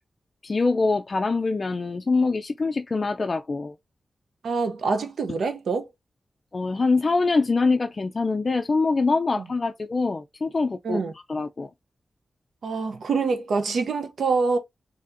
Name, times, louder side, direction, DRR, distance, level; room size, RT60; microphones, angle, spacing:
voice 1, 0.4-3.8 6.5-11.7, left 3 dB, 40° left, 0.3 m, -24 dB
voice 2, 4.4-5.8 9.4-9.5 10.8-11.1 12.6-14.6, right 4 dB, 85° right, 0.6 m, -25 dB
4.2 x 2.7 x 2.5 m
wide cardioid pair, 130°, 0 cm